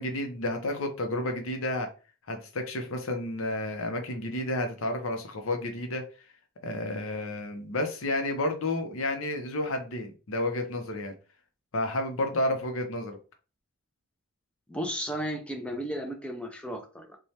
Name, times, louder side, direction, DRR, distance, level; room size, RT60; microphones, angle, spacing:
voice 1, 0.0-1.9 2.3-6.0 6.6-11.1 11.7-13.2, left 1 dB, 70° left, 5 dB, 0.7 m, -31 dB
voice 2, 14.7-17.2, equal, 5° left, 3 dB, 0.5 m, -34 dB
3.2 x 2.3 x 2.7 m, 0.35 s
head